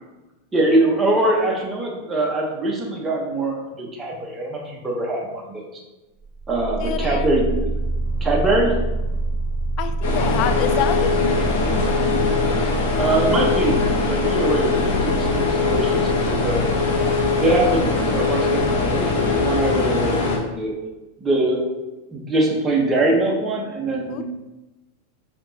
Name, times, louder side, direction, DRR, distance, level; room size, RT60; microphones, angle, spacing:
voice 1, 0.5-5.8 6.5-7.5 8.2-8.8 13.0-16.7 17.4-20.7 21.2-21.7 22.1-24.2, right 2 dB, 20° right, -2 dB, 1.0 m, -22 dB
sound 1, 6.2-19.7, right 2 dB, 10° left, 1.5 m, -28 dB
voice 2, 6.8-7.3 9.8-12.3 24.1-24.2, left 10 dB, 50° left, 10 dB, 0.3 m, -28 dB
sound 2, 10.0-20.4, left 4 dB, 70° left, 1.2 m, -21 dB
4.9 x 3.0 x 2.8 m, 1.1 s
hypercardioid pair, 100°, 0 cm